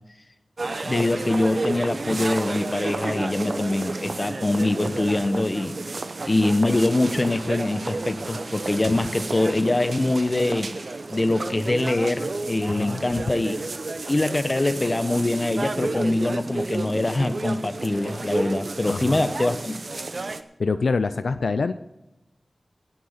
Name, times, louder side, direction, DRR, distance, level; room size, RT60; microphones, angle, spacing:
sound 1, 0.6-20.4, right 3 dB, 65° right, 0.8 m, -31 dB
voice 1, 0.8-5.8 6.2-10.7 11.1-13.5 14.1-19.7, left 2 dB, 40° left, 11 dB, 1.0 m, -23 dB
voice 2, 12.7-13.2 18.8-19.2 20.6-21.7, left 4 dB, 90° left, 11 dB, 0.5 m, -26 dB
18.0 x 6.6 x 5.8 m, 0.95 s
cardioid pair, 40°, 0 cm